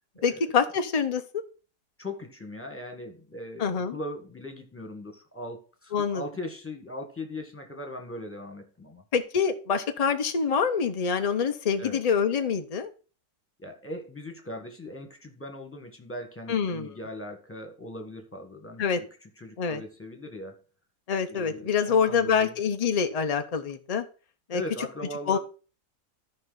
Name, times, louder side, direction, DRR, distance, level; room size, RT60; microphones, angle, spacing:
voice 1, 0.2-1.2 3.6-4.0 5.9-6.2 9.1-12.9 16.5-17.0 18.8-19.0 19.6-19.8 21.1-24.0 24.5-24.6 25.3-25.4, left 6 dB, 80° left, 7 dB, 0.3 m, -26 dB
voice 2, 2.0-9.0 11.8-12.0 13.6-20.6 21.3-22.6 24.5-25.4, left 1 dB, 10° left, 4 dB, 1.4 m, -39 dB
13.0 x 5.3 x 4.0 m, 0.36 s
omnidirectional pair, 1.8 m